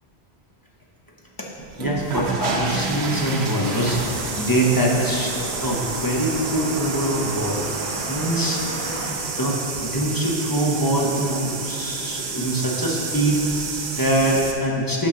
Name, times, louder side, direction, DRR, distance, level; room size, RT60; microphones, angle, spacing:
sound 1, 1.6-14.5, right 4 dB, 75° right, 1.0 m, -30 dB
voice 1, 1.8-7.6 8.1-8.6 9.0-15.1, right 1 dB, 20° left, -3 dB, 0.9 m, -23 dB
sound 2, 2.1-10.3, right 1 dB, 30° right, 1.1 m, -35 dB
10.0 x 5.9 x 3.8 m, 2.8 s
omnidirectional pair, 1.1 m